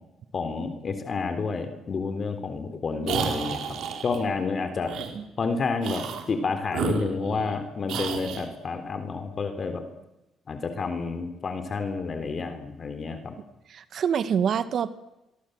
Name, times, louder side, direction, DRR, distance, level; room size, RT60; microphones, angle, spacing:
voice 1, 0.3-4.9 5.4-9.8 10.5-13.4, left 4 dB, 45° left, 8 dB, 3.6 m, -30 dB
sound 1, 3.0-4.2 4.9-5.1 5.8-6.3 6.7-7.6 7.9-8.5, right 7 dB, 80° right, 4.4 m, -31 dB
voice 2, 13.7-14.9, right 7 dB, 60° right, 13 dB, 1.7 m, -26 dB
27.5 x 24.0 x 8.1 m, 0.96 s
cardioid pair, 90°, 0 cm